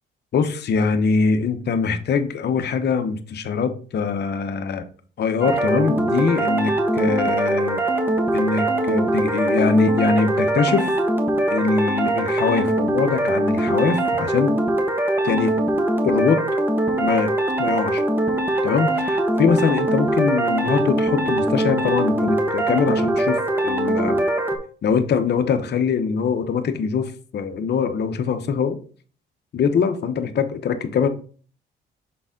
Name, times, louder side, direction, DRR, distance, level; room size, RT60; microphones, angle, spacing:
voice 1, 0.3-4.9 5.2-7.8 8.3-10.9 11.5-14.6 15.2-15.6 16.0-16.4 17.0-17.3 17.6-18.0 18.6-24.2 24.8-28.8 29.5-31.1, left 5 dB, 55° left, 0.9 m, -22 dB
sound 1, 5.4-24.6, right 1 dB, 10° right, 1.3 m, -22 dB
6.7 x 4.0 x 3.8 m
cardioid pair, 90°, 20 cm